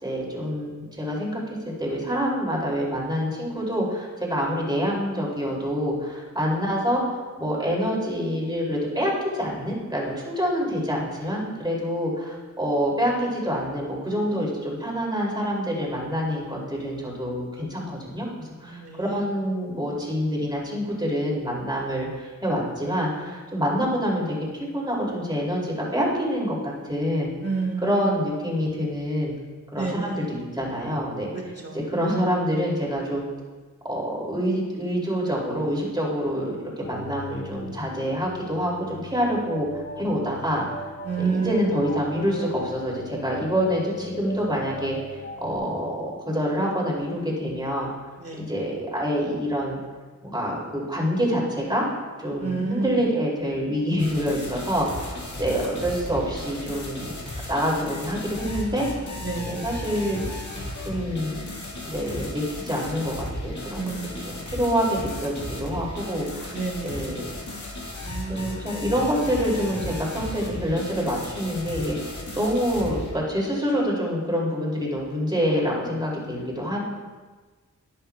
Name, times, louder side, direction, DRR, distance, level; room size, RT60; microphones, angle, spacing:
voice 1, 0.0-18.3 18.6-27.3 27.8-29.3 29.7-33.3 33.8-40.6 41.2-47.9 48.5-49.8 50.2-51.8 52.2-55.0 55.4-57.2 57.5-58.9 59.5-60.4 60.8-61.4 61.8-63.1 63.4-63.8 64.2-66.5 66.8-67.3 68.3-76.8, equal, 15° right, -4 dB, 2.7 m, -26 dB
voice 2, 18.6-19.2 27.4-28.1 29.7-30.3 31.6-31.8 41.0-41.7 48.2-48.5 52.4-53.0 59.2-59.6 63.8-64.5 66.5-67.2 68.0-68.7, right 4 dB, 50° right, 1 dB, 1.7 m, -30 dB
sound 1, 36.8-45.6, left 2 dB, 40° left, 0.8 m, -39 dB
sound 2, 54.0-73.1, left 1 dB, 70° left, 1.7 m, -35 dB
11.0 x 10.5 x 2.2 m, 1.3 s
wide cardioid pair, 75°, 30 cm